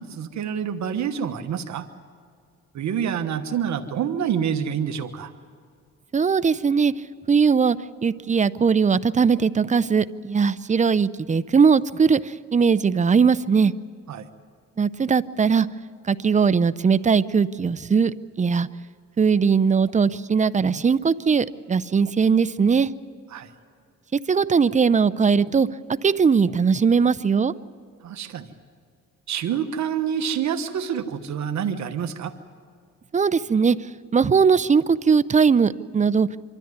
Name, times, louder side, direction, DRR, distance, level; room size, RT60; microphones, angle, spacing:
voice 1, 0.0-1.9 2.7-5.3 14.1-14.3 23.3-23.5 28.0-28.5 29.3-32.3, right 8 dB, 65° right, 7 dB, 1.3 m, -27 dB
voice 2, 6.1-6.9 7.3-7.8 8.0-13.7 14.8-15.7 16.1-18.1 18.4-18.7 19.2-22.9 24.1-25.7 26.0-27.5 33.1-33.8 34.1-36.3, right 5 dB, 25° right, 15 dB, 0.6 m, -19 dB
25.5 x 13.5 x 9.5 m, 2.2 s
cardioid pair, 90°, 30 cm